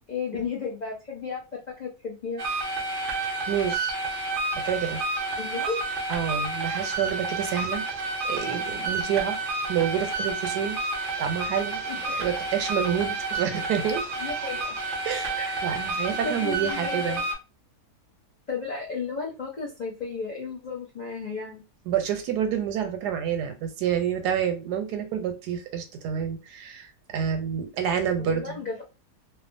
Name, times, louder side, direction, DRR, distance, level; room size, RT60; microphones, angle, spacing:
voice 1, 0.1-2.4 5.4-5.8 11.9-12.0 14.2-14.8 15.4-15.7 16.2-17.2 18.5-21.6 28.2-28.8, left 5 dB, 65° left, -4 dB, 0.4 m, -33 dB
sound 1, 2.4-17.3, right 3 dB, 65° right, 0.5 m, -30 dB
voice 2, 3.2-3.9 4.5-5.0 6.1-7.8 8.2-9.4 9.7-10.8 11.2-11.8 12.1-14.0 15.0-17.2 21.9-28.6, right 8 dB, 85° right, 6 dB, 1.2 m, -28 dB
2.7 x 2.3 x 2.5 m, 0.29 s
omnidirectional pair, 1.7 m